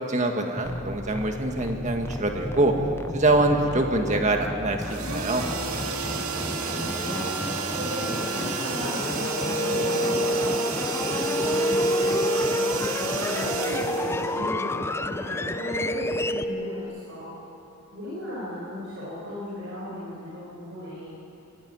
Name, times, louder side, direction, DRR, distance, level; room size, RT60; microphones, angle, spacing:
voice 1, 0.1-2.7 3.1-5.4, right 2 dB, 35° right, 3 dB, 2.0 m, -24 dB
sound 1, 0.6-16.4, left 2 dB, 10° left, 0.4 m, -33 dB
sound 2, 4.8-14.8, right 5 dB, 85° right, 2.1 m, -32 dB
voice 2, 6.6-17.3 17.9-21.2, left 1 dB, 55° right, -8 dB, 5.8 m, -36 dB
sound 3, 9.0-16.8, equal, 70° left, 2.5 m, -29 dB
24.0 x 15.5 x 9.5 m, 2.8 s
head